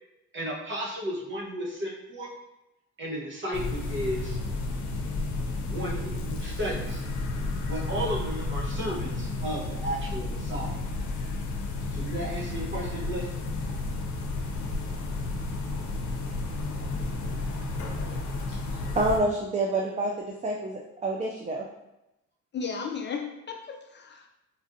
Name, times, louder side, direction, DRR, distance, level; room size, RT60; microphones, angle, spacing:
voice 1, 0.3-2.3 3.0-4.4 5.7-7.0 7.7-10.8 11.9-13.3, equal, 40° right, -3 dB, 1.1 m, -34 dB
sound 1, 3.5-19.2, left 2 dB, 75° left, 0.6 m, -32 dB
voice 2, 18.9-21.6, right 2 dB, 25° right, -1 dB, 0.4 m, -28 dB
voice 3, 22.5-24.3, left 5 dB, 40° left, 3 dB, 0.4 m, -35 dB
4.2 x 2.5 x 2.6 m, 0.92 s
cardioid pair, 90°, 30 cm